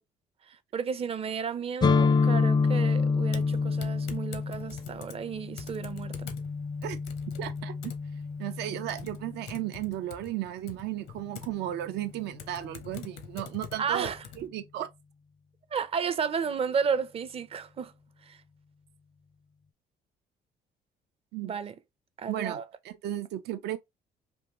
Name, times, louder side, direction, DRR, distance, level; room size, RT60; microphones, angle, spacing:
voice 1, 0.5-6.3 13.8-14.2 15.7-17.9 18.3-18.4 21.4-21.7 22.2-22.6, right 6 dB, 35° right, 0.5 m, -32 dB
sound 1, 1.8-9.6, left 4 dB, 25° left, 0.4 m, -28 dB
Typing, 3.3-14.5, left 8 dB, 85° left, 0.8 m, -47 dB
voice 2, 7.4-7.9 8.4-14.9 21.3-21.5 22.3-22.6 22.8-23.8, right 13 dB, 80° right, 0.6 m, -35 dB
3.6 x 2.6 x 2.9 m
cardioid pair, 110°, 17 cm